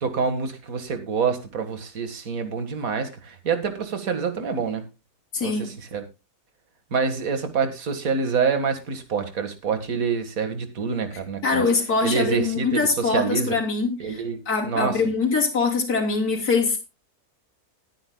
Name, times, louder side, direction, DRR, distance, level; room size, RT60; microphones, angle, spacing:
voice 1, 0.0-4.8 5.4-6.0 6.9-11.7 12.0-13.5 14.0-15.0, right 5 dB, 65° right, 2.1 m, -26 dB
voice 2, 5.3-5.7 11.4-16.8, left 4 dB, 85° left, 3.6 m, -23 dB
20.0 x 9.1 x 2.2 m
omnidirectional pair, 1.6 m